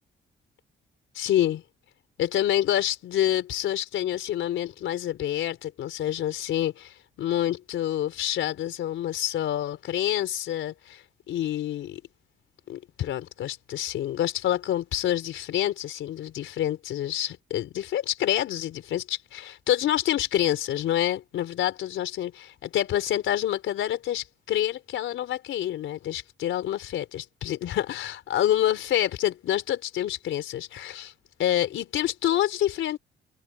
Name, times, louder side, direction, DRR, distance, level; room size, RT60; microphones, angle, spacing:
voice 1, 1.1-1.6 2.2-12.0 12.7-31.1 31.4-33.0, left 12 dB, 75° left, 4.2 m, -27 dB
cardioid pair, 90°, 20 cm